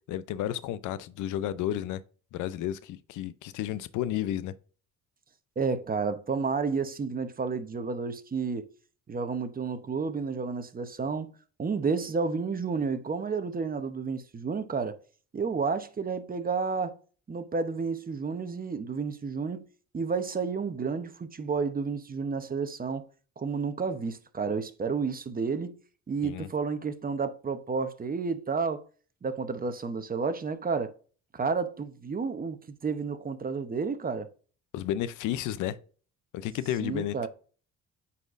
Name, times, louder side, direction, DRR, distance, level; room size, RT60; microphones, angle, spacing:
voice 1, 0.1-2.0 2.3-4.5 26.2-26.5 34.7-35.8 36.3-37.3, left 11 dB, 90° left, 0.5 m, -32 dB
voice 2, 5.6-8.7 9.1-11.3 11.6-15.0 15.3-17.0 17.3-19.7 19.9-23.1 23.4-25.8 26.1-28.8 29.2-30.9 31.3-34.3 36.8-37.3, right 5 dB, 30° right, 0.8 m, -31 dB
8.9 x 4.2 x 2.5 m
cardioid pair, 90°, 30 cm